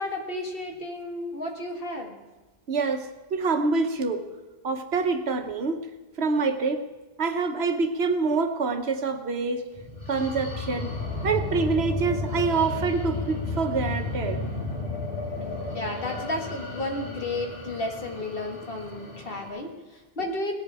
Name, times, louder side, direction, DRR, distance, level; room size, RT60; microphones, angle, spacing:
voice 1, 0.0-2.2 15.4-20.5, left 1 dB, 65° left, 2 dB, 2.0 m, -33 dB
voice 2, 2.7-4.2 4.6-5.8 6.2-6.9 7.2-9.6 10.1-10.9 11.2-14.4, right 4 dB, 90° right, 7 dB, 1.3 m, -26 dB
sound 1, 9.8-19.5, left 3 dB, 80° left, 3.7 m, -33 dB
18.0 x 11.0 x 4.8 m, 1.1 s
omnidirectional pair, 1.0 m